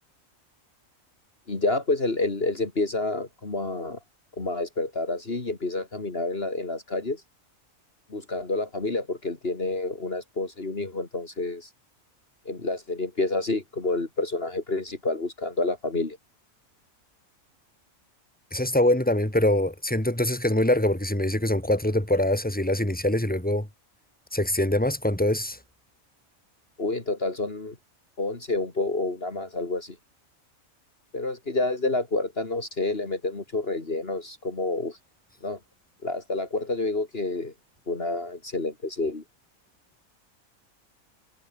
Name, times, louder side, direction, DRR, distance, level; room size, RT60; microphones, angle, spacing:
voice 1, 1.5-4.0 4.4-7.2 8.1-11.7 12.4-16.2 26.8-27.8 28.2-30.0 31.1-35.0 35.4-35.6 36.0-37.5 37.9-39.2, left 2 dB, 45° left, 2.9 m, -29 dB
voice 2, 18.5-23.7 24.3-25.6, left 1 dB, 5° left, 3.8 m, -24 dB
omnidirectional pair, 1.4 m